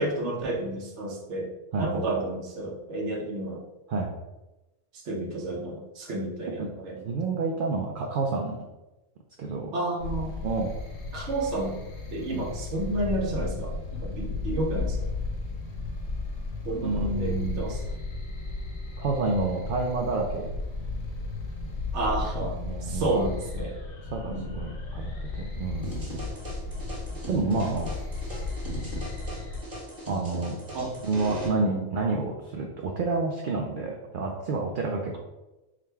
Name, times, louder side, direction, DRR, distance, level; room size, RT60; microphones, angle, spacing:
voice 1, 0.0-1.5 1.8-3.6 4.9-7.0 9.7-10.4 11.1-11.8 12.1-15.0 16.6-18.0 21.9-23.7 24.3-24.5 30.7-30.9 31.4-31.8, right 2 dB, 75° right, 0 dB, 1.1 m, -31 dB
voice 2, 7.0-8.6 9.4-9.7 10.4-10.7 12.3-12.4 16.8-17.7 19.0-20.5 22.6-23.2 24.1-26.0 27.3-27.9 30.1-30.5 31.0-35.2, right 3 dB, 60° right, 0 dB, 0.6 m, -29 dB
sound 1, 10.0-29.6, left 3 dB, 70° left, 1.1 m, -34 dB
sound 2, 25.8-31.5, right 1 dB, 35° right, 1.6 m, -38 dB
3.7 x 2.2 x 4.5 m, 1.0 s
omnidirectional pair, 1.2 m